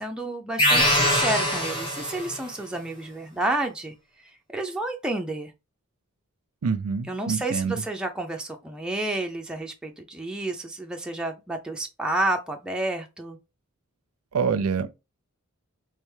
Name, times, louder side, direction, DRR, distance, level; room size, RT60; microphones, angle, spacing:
voice 1, 0.0-5.5 7.1-13.4, right 2 dB, 5° right, 0.4 m, -30 dB
sound 1, 0.6-2.5, equal, 25° left, 1.4 m, -22 dB
voice 2, 6.6-7.8 14.3-14.9, right 6 dB, 80° right, 0.5 m, -26 dB
3.4 x 3.3 x 3.2 m
head